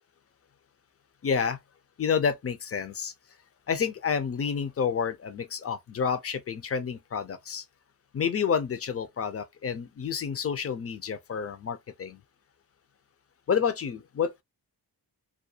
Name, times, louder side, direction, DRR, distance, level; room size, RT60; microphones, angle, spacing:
voice 1, 1.2-1.6 2.0-3.1 3.7-7.6 8.1-12.2 13.5-14.4, left 6 dB, 35° left, 0.4 m, -29 dB
2.4 x 2.2 x 2.6 m
wide cardioid pair, 100°, 41 cm